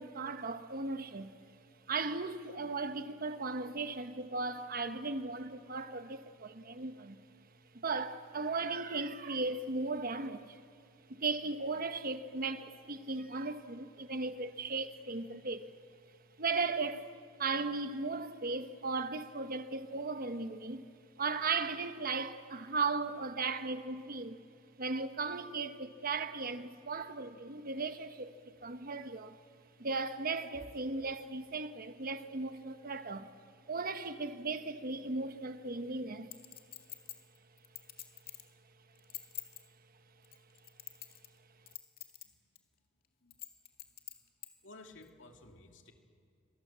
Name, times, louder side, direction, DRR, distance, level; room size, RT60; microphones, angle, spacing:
voice 1, 0.0-1.4 1.9-7.2 7.7-10.6 11.1-15.7 16.4-17.1 17.4-20.8 21.2-24.4 24.8-28.3 28.6-29.4 29.8-33.3 33.7-36.3, right 3 dB, 50° right, 1.2 m, -36 dB
Chink clink, 36.3-38.5 39.0-39.6 40.2-41.4 41.7-42.2 42.6-42.7 43.3-44.5 45.0-45.1, left 13 dB, 50° left, 2.3 m, -45 dB
voice 2, 44.6-45.9, left 2 dB, 70° left, 2.7 m, -54 dB
28.0 x 23.5 x 7.5 m
head